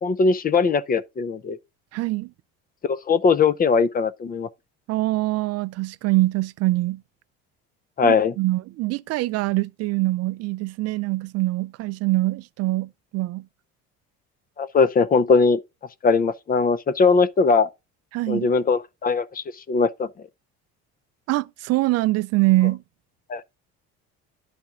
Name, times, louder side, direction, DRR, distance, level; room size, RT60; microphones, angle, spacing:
voice 1, 0.0-1.6 2.9-4.5 8.0-8.3 14.6-15.6 16.0-17.7 18.3-20.1 23.3-23.5, left 4 dB, 30° left, 0.6 m, -20 dB
voice 2, 1.9-2.3 4.9-7.0 8.0-13.5 18.1-18.5 21.3-22.8, right 19 dB, 55° right, 0.4 m, -24 dB
10.5 x 4.2 x 3.6 m
supercardioid pair, 100°, 30 cm